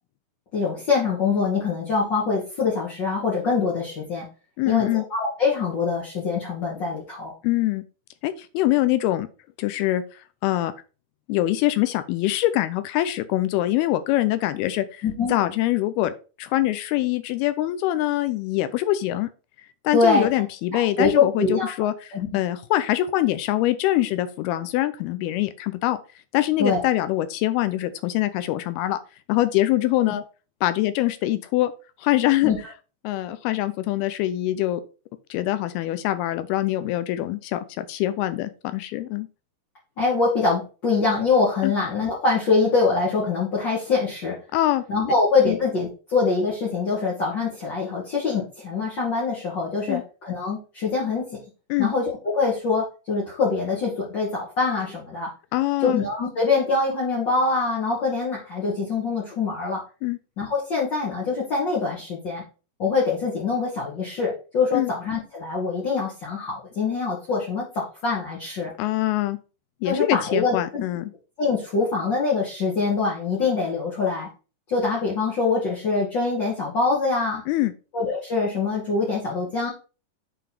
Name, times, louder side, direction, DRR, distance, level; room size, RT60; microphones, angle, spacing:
voice 1, 0.5-4.3 4.7-7.3 15.0-15.4 19.9-20.3 20.7-21.7 22.1-22.3 26.6-26.8 32.4-32.6 40.0-44.3 44.9-51.4 51.8-52.0 52.3-55.3 55.8-59.8 60.4-62.4 62.8-68.7 69.8-70.8 71.4-74.3 74.7-77.4 77.9-79.7, left 4 dB, 45° left, -5 dB, 1.6 m, -24 dB
voice 2, 4.6-5.0 7.4-7.8 8.2-9.3 9.6-10.0 10.4-10.7 11.3-15.0 15.3-16.1 16.4-19.3 19.8-26.0 26.3-29.0 29.3-30.2 30.6-31.7 32.0-32.5 33.0-34.8 35.3-39.3 41.6-41.7 44.5-44.8 45.5-45.6 49.9-50.0 51.7-51.9 55.5-56.0 60.0-60.2 64.7-64.9 68.8-69.4 69.8-71.1 77.5-77.7, left 15 dB, 90° left, 12 dB, 2.6 m, -24 dB
8.3 x 3.9 x 4.3 m, 0.34 s
omnidirectional pair, 4.5 m